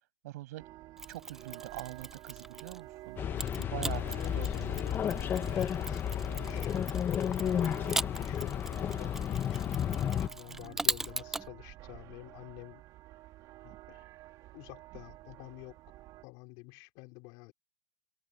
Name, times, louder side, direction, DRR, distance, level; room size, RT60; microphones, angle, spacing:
voice 1, 0.2-0.7 1.1-3.2 3.6-4.0 4.3-4.7 10.5-10.7, right 17 dB, 65° right, 7.2 m, -43 dB
sound 1, 0.6-16.2, right 16 dB, 40° right, 4.0 m, -50 dB
Mechanisms, 1.0-2.9 3.4-11.5, right 2 dB, 5° right, 0.4 m, -39 dB
sound 2, 3.2-10.3, left 9 dB, 25° left, 1.3 m, -32 dB
voice 2, 3.9-6.7 7.2-12.8 13.6-14.1 14.5-15.8 16.2-17.5, left 26 dB, 45° left, 5.5 m, -49 dB
supercardioid pair, 145°, 9 cm